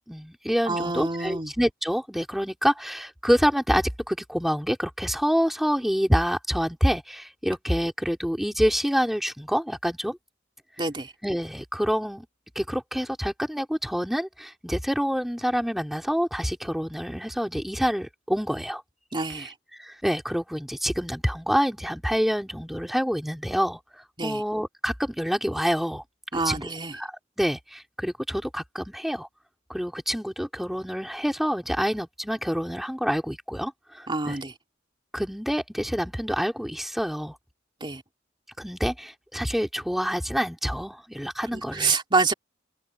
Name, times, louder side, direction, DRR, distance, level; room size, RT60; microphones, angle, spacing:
voice 1, 0.1-10.2 11.2-12.3 12.5-18.8 19.4-26.0 26.3-29.3 29.7-34.4 35.1-37.4 38.6-42.0, equal, ahead, 2.7 m, -27 dB
voice 2, 0.7-1.5 10.8-11.1 19.1-19.5 24.2-24.4 26.3-27.0 34.1-34.5 37.8-38.0 41.5-42.3, right 3 dB, 25° right, 3.0 m, -27 dB
head